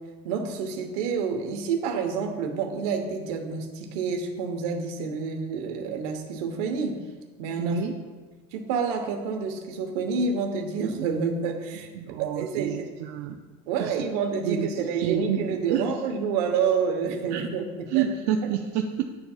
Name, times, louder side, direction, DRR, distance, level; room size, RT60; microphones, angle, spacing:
voice 1, 0.2-7.0 7.4-7.8 8.5-11.9 12.2-12.9 13.7-18.1, right 5 dB, 80° right, 4 dB, 1.0 m, -28 dB
voice 2, 7.6-8.0 12.0-13.4 13.8-13.9 14.4-15.8 17.3-17.5 17.9-19.0, right 9 dB, 65° right, 3 dB, 0.5 m, -28 dB
10.5 x 4.4 x 2.4 m, 1.4 s
cardioid pair, 150°, 19 cm